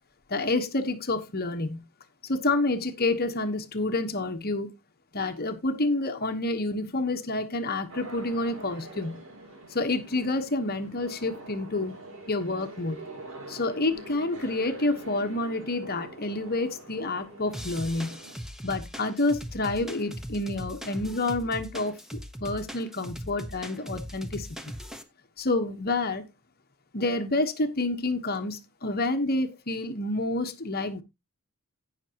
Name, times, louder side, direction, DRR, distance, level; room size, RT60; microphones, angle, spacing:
voice 1, 0.3-1.8 2.2-4.7 5.1-9.2 9.7-11.9 12.3-13.0 13.5-18.2 18.6-21.9 22.4-24.7 25.4-26.3 26.9-31.0, left 2 dB, 45° left, 1.2 m, -28 dB
sound 1, 7.9-18.4, right 2 dB, 60° right, 2.9 m, -45 dB
sound 2, 17.5-25.0, equal, ahead, 0.9 m, -40 dB
17.0 x 6.0 x 2.9 m
head